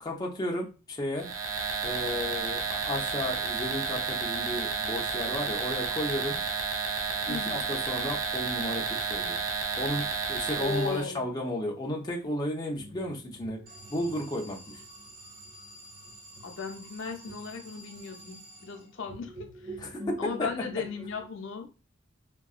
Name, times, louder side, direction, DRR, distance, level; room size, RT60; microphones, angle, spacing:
voice 1, 0.0-1.3 1.8-6.4 7.1-9.4 9.8-13.6 13.9-14.6 19.8-20.1 20.4-20.5, left 1 dB, 20° left, -1 dB, 0.5 m, -33 dB
sound 1, 1.2-11.1, right 5 dB, 75° right, 0.5 m, -31 dB
voice 2, 7.3-7.6 10.6-11.3 16.4-19.8 20.2-21.7, left 5 dB, 65° left, 3 dB, 0.6 m, -36 dB
sound 2, 12.7-21.3, right 1 dB, 20° right, 1.4 m, -47 dB
Alarm, 13.7-19.2, right 1 dB, 45° right, 1.0 m, -50 dB
3.7 x 2.2 x 2.4 m, 0.33 s
head